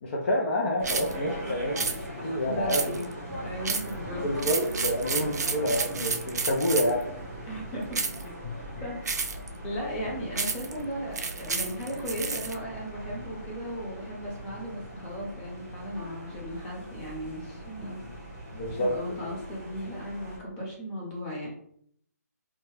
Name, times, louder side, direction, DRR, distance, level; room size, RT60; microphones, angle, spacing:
voice 1, 0.0-1.9 2.2-2.8 4.2-7.0 18.5-19.3, equal, 40° left, -3 dB, 0.5 m, -28 dB
sound 1, 0.8-20.4, right 1 dB, 10° right, 0.6 m, -40 dB
sound 2, 0.8-1.1 1.8-2.0 2.7-3.1 3.6-3.9 4.4-7.0 7.9-8.2 9.1-9.5 10.4-10.7 11.2-12.5, right 4 dB, 75° right, 0.4 m, -30 dB
voice 2, 2.4-3.1 3.4-4.2 7.5-8.3 8.8-9.0 9.6-18.2 18.7-21.5, equal, 20° left, -3 dB, 0.8 m, -36 dB
2.7 x 2.2 x 3.1 m, 0.67 s
hypercardioid pair, 155°, 9 cm